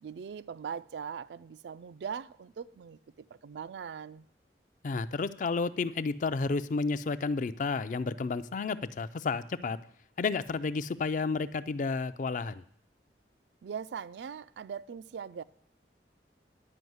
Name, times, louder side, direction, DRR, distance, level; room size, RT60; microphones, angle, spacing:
voice 1, 0.0-3.0 3.4-4.2 13.6-15.4, right 7 dB, 75° right, 0.3 m, -40 dB
voice 2, 4.8-9.8 10.2-12.6, left 4 dB, 45° left, 0.4 m, -31 dB
10.5 x 5.4 x 7.8 m
head